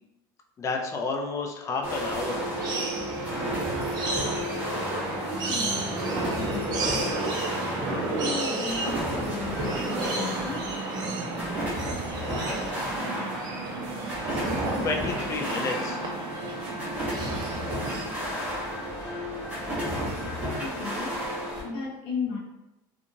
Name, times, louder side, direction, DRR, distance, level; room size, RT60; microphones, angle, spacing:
voice 1, 0.6-2.5 14.1-14.4 14.8-16.1, left 3 dB, 30° left, 2 dB, 0.4 m, -31 dB
sound 1, 1.8-21.6, equal, 15° right, 1.1 m, -33 dB
sound 2, 2.6-18.1, right 2 dB, 40° right, 0.6 m, -32 dB
voice 2, 5.2-5.9 6.3-6.8 7.9-10.7 20.6-21.2 21.6-22.4, left 4 dB, 70° left, -2 dB, 0.7 m, -35 dB
sound 3, 8.7-9.1 9.4-9.8 10.4-10.7 11.4-11.8 12.6-13.0 14.1-14.5 15.7-20.5, left 4 dB, 5° left, 1.1 m, -46 dB
2.7 x 2.4 x 2.7 m, 0.95 s
cardioid pair, 130°, 11 cm